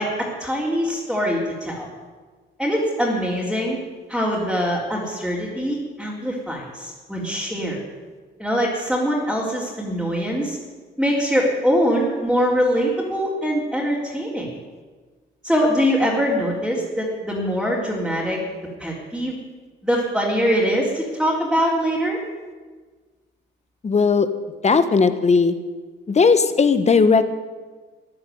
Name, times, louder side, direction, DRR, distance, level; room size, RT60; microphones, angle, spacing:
voice 1, 0.0-1.9 2.6-3.8 4.1-7.8 8.4-10.6 11.0-14.5 15.4-18.4 18.8-19.4 19.8-22.2, equal, ahead, -6 dB, 3.9 m, -23 dB
voice 2, 23.8-24.3 24.6-25.5 26.1-27.2, left 5 dB, 35° left, 11 dB, 1.3 m, -17 dB
14.5 x 10.5 x 9.4 m, 1.4 s
cardioid pair, 90°, 20 cm